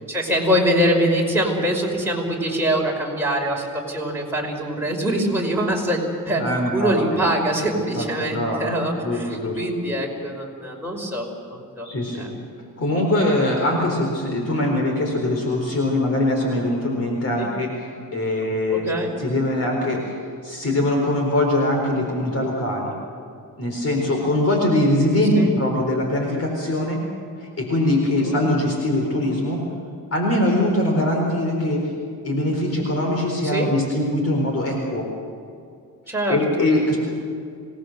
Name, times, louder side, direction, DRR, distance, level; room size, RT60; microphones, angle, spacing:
voice 1, 0.1-9.3 9.6-11.9 12.2-12.3 17.4-17.5 18.7-19.1 25.4-25.5 28.1-28.4 33.4-33.7 36.1-36.7, equal, 5° right, -2 dB, 5.4 m, -24 dB
voice 2, 6.4-7.2 7.9-8.7 9.0-9.6 11.8-12.3 12.8-18.9 19.2-20.2 20.4-22.9 23.6-27.0 27.4-29.7 30.1-31.9 32.2-35.1 36.3-37.0, left 1 dB, 45° left, 1 dB, 4.3 m, -22 dB
26.5 x 19.0 x 6.6 m, 2.4 s
cardioid pair, 115°, 35 cm